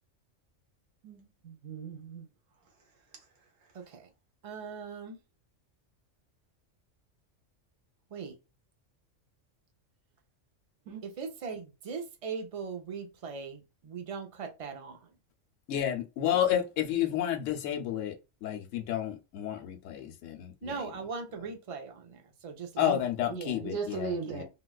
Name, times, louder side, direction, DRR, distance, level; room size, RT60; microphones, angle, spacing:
voice 1, 1.0-2.2 10.9-11.0 23.3-24.4, right 4 dB, 90° right, 1.2 m, -37 dB
voice 2, 3.7-4.1 4.4-5.2 8.1-8.3 11.0-15.0 20.6-23.0, right 5 dB, 45° right, 0.4 m, -39 dB
voice 3, 15.7-18.1 18.4-20.9 22.8-24.4, left 10 dB, 80° left, 1.0 m, -31 dB
3.7 x 2.3 x 2.3 m
omnidirectional pair, 1.3 m